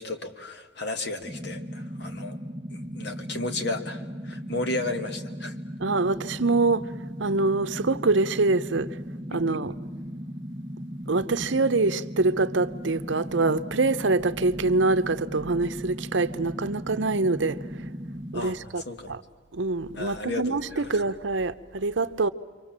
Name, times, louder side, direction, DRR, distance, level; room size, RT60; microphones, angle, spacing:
voice 1, 0.0-2.4 2.7-5.6 9.3-9.4 18.3-18.6 18.8-19.1 19.9-20.9, left 2 dB, 60° left, 1.7 m, -33 dB
sound 1, 1.2-18.3, equal, 25° right, 1.3 m, -37 dB
voice 2, 5.8-6.9 7.2-8.9 9.3-9.7 11.1-17.6 18.3-19.2 19.5-22.3, right 3 dB, 70° right, 0.8 m, -25 dB
29.0 x 24.0 x 7.4 m
head